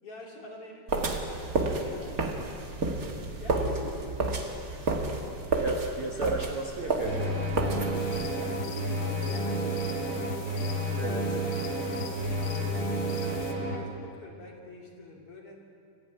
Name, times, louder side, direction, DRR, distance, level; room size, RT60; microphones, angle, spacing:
voice 1, 0.0-2.6 3.4-4.3 4.7-5.6 6.8-10.6 11.3-15.6, left 2 dB, 40° left, -1 dB, 3.3 m, -46 dB
sound 1, 0.9-8.3, right 2 dB, 45° right, 1.2 m, -31 dB
voice 2, 5.6-7.3 11.0-11.3, right 3 dB, 65° right, 1 dB, 1.3 m, -33 dB
sound 2, 7.0-13.8, right 1 dB, 25° right, 2.4 m, -30 dB
sound 3, 7.9-13.5, left 7 dB, 75° left, 3.4 m, -44 dB
25.5 x 15.5 x 9.3 m, 2.6 s
omnidirectional pair, 4.7 m